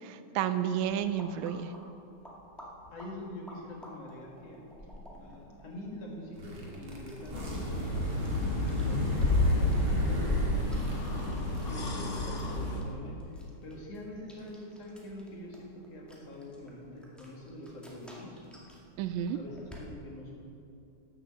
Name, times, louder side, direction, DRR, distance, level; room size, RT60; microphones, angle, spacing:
voice 1, 0.0-1.7 19.0-19.4, right 9 dB, 80° right, 11 dB, 1.7 m, -31 dB
sound 1, 0.7-19.9, equal, ahead, 0.8 m, -43 dB
voice 2, 2.9-4.7 5.2-10.3 11.1-18.4 19.3-20.4, left 1 dB, 55° left, -2 dB, 2.9 m, -45 dB
sound 2, 6.3-12.9, right 1 dB, 45° right, 2.4 m, -35 dB
sound 3, 7.3-12.8, left 2 dB, 70° left, 0.7 m, -31 dB
12.0 x 7.8 x 7.6 m, 2.6 s
omnidirectional pair, 3.6 m